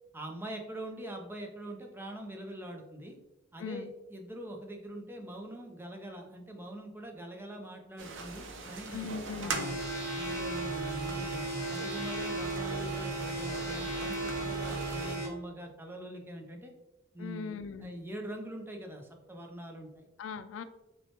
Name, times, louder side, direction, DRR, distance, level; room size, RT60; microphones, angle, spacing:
voice 1, 0.1-3.2 3.5-9.6 10.1-16.7 17.1-20.1, right 1 dB, 10° right, 2 dB, 0.5 m, -43 dB
voice 2, 3.6-3.9 8.9-9.8 17.2-18.1 20.2-20.6, left 5 dB, 80° left, 11 dB, 0.3 m, -40 dB
sound 1, 8.0-15.2, right 4 dB, 75° right, 0.6 m, -42 dB
sound 2, 9.5-15.3, right 2 dB, 15° left, 1.0 m, -35 dB
5.8 x 2.2 x 2.9 m, 0.94 s
head